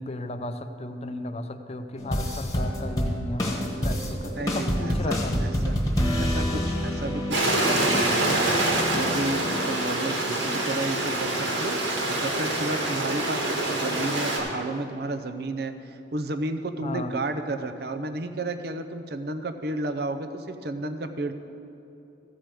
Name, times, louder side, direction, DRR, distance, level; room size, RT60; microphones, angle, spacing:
voice 1, 0.0-5.5 16.8-17.1, left 2 dB, 35° left, 8 dB, 0.5 m, -34 dB
sound 1, 2.0-10.8 11.1-11.6 12.0-12.4 12.8-12.9, equal, 20° left, 1.3 m, -29 dB
voice 2, 4.4-5.8 6.1-8.5 8.9-21.3, right 2 dB, 60° right, 9 dB, 0.6 m, -32 dB
Stream, 7.3-14.4, right 1 dB, 85° right, 2.0 m, -26 dB
14.5 x 5.0 x 7.6 m, 2.9 s
head